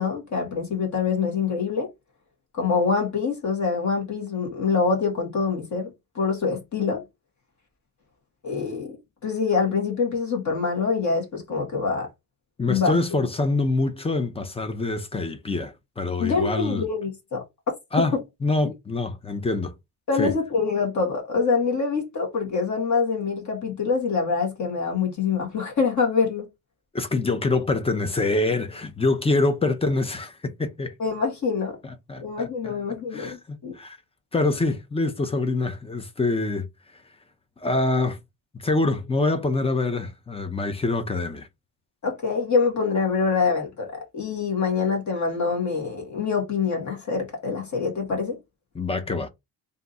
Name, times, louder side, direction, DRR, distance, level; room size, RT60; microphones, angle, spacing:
voice 1, 0.0-1.9 2.5-7.0 8.4-9.0 9.2-12.1 12.7-13.0 16.2-17.4 20.1-26.5 31.0-31.8 32.2-33.7 42.0-48.4, left 5 dB, 45° left, 1.8 m, -25 dB
voice 2, 12.6-16.9 17.9-18.1 18.4-19.7 20.2-20.3 26.9-30.9 31.8-32.7 33.1-34.0 34.3-36.7 37.6-38.2 38.6-41.5 48.7-49.3, left 2 dB, 15° left, 0.6 m, -25 dB
3.5 x 2.7 x 4.0 m
cardioid pair, 125°, 41 cm